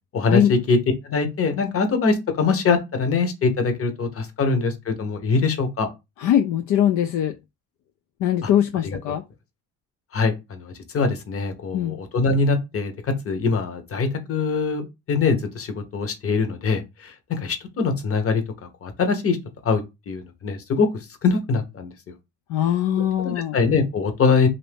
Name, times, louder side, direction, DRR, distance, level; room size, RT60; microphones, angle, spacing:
voice 1, 0.1-0.8 1.0-5.9 8.4-8.5 8.8-9.1 10.1-18.4 18.8-19.4 19.6-20.9 21.2-21.9 23.0-24.5, left 4 dB, 50° left, 0.9 m, -23 dB
voice 2, 6.2-7.4 8.2-9.2 11.7-12.0 22.5-23.6, left 10 dB, 80° left, 0.4 m, -21 dB
2.6 x 2.6 x 3.4 m
cardioid pair, 90°, 30 cm